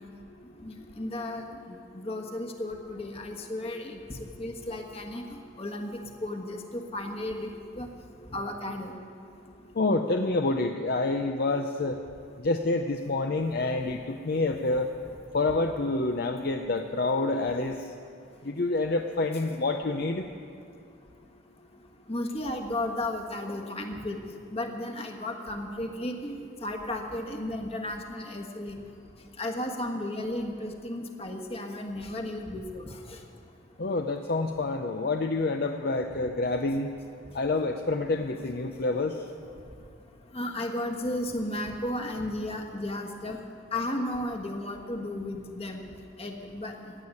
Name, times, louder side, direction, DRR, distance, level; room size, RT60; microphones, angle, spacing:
voice 1, 0.6-1.4 1.9-4.0 4.4-5.2 5.6-5.9 6.2-7.9 8.3-8.9 22.1-24.2 24.5-28.8 29.4-32.8 40.3-43.4 43.7-45.8 46.2-46.7, left 1 dB, 30° left, 3 dB, 1.4 m, -34 dB
voice 2, 9.8-12.0 12.4-14.9 15.3-17.8 18.5-20.3 33.8-36.9 37.3-39.2, left 2 dB, 50° left, 4 dB, 0.6 m, -27 dB
16.0 x 8.7 x 9.7 m, 2.4 s
head